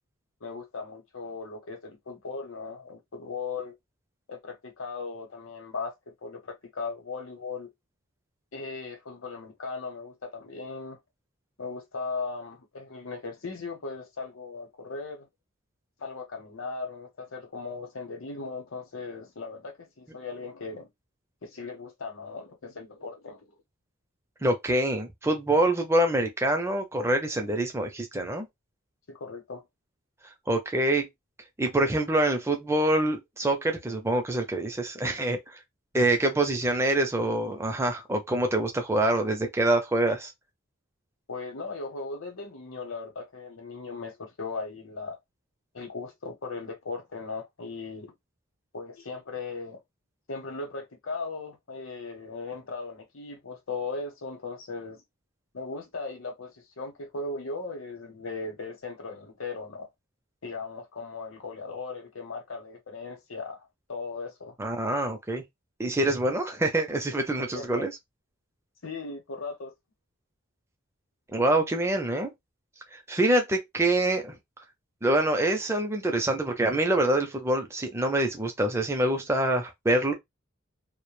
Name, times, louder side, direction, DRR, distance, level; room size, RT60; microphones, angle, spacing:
voice 1, 0.4-3.7 4.3-7.7 8.5-11.0 11.6-15.3 16.0-20.9 21.4-23.5 29.1-29.6 41.3-45.2 45.7-48.1 48.7-49.8 50.3-55.0 55.5-56.5 56.8-59.9 60.4-63.6 63.9-64.5 67.5-67.9 68.8-69.7, left 4 dB, 75° left, 0.8 m, -37 dB
voice 2, 24.4-28.5 30.5-31.1 31.6-35.6 35.9-40.3 64.6-65.4 65.8-67.9 71.3-72.3 72.9-74.4 75.0-80.1, right 1 dB, 10° right, 0.4 m, -25 dB
2.2 x 2.1 x 3.0 m
head